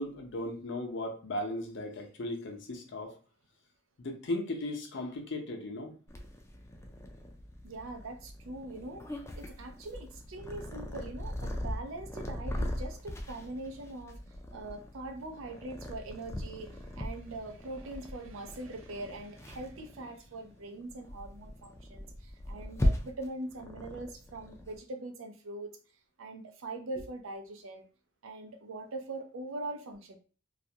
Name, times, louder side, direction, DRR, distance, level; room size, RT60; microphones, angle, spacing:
voice 1, 0.0-3.1 4.0-5.9, left 1 dB, 65° left, 3 dB, 0.6 m, -36 dB
Purr, 6.1-24.8, left 1 dB, 15° left, 0.3 m, -39 dB
voice 2, 7.6-9.0 9.4-14.2 14.5-25.7 26.2-27.8 28.2-30.2, right 2 dB, 85° right, 5 dB, 0.5 m, -42 dB
2.4 x 2.1 x 2.7 m, 0.37 s
head